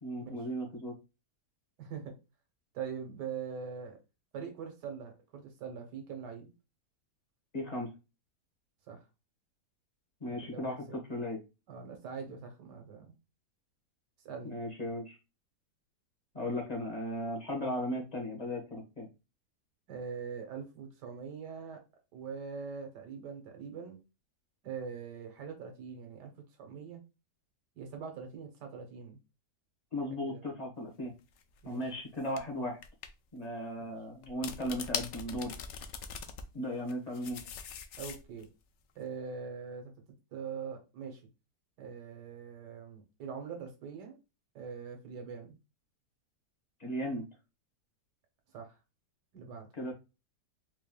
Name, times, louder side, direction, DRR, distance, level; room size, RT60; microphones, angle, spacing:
voice 1, 0.0-0.9 7.5-7.9 10.2-11.4 14.4-15.2 16.3-19.1 29.9-31.1 31.6-32.8 33.3-35.5 36.5-37.4 46.8-47.3 49.7-49.9, equal, 25° left, 0 dB, 1.2 m, -36 dB
voice 2, 1.8-2.1 2.7-4.0 4.3-6.5 8.9-9.0 10.3-10.8 11.7-13.2 14.2-14.5 19.9-21.8 22.1-24.0 24.6-26.3 26.6-27.0 27.8-29.2 30.2-30.4 31.6-31.8 33.8-33.9 38.0-38.5 38.9-39.9 40.3-41.2 41.8-44.2 44.5-45.6 48.5-48.8 49.3-49.7, right 6 dB, 85° right, 4 dB, 1.6 m, -42 dB
sound 1, 31.4-31.6 32.4-32.5 32.8-33.1 34.2-36.4 36.9-38.4, left 7 dB, 85° left, 0.6 m, -41 dB
4.3 x 3.2 x 2.3 m, 0.28 s
omnidirectional pair, 1.8 m